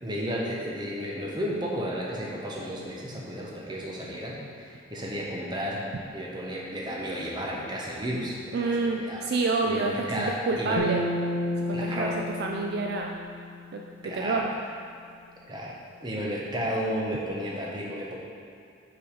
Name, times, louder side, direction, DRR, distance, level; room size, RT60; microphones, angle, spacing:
voice 1, 0.0-5.8 6.1-9.2 9.6-10.8 11.7-12.2 14.0-14.5 15.5-18.2, equal, 25° right, -3 dB, 0.9 m, -33 dB
voice 2, 8.5-11.1 11.7-12.1 12.4-13.1 13.7-14.5, right 3 dB, 55° right, 1 dB, 0.4 m, -28 dB
sound 1, 10.8-14.1, left 1 dB, 80° left, 0.8 m, -32 dB
5.5 x 4.0 x 5.0 m, 2.5 s
head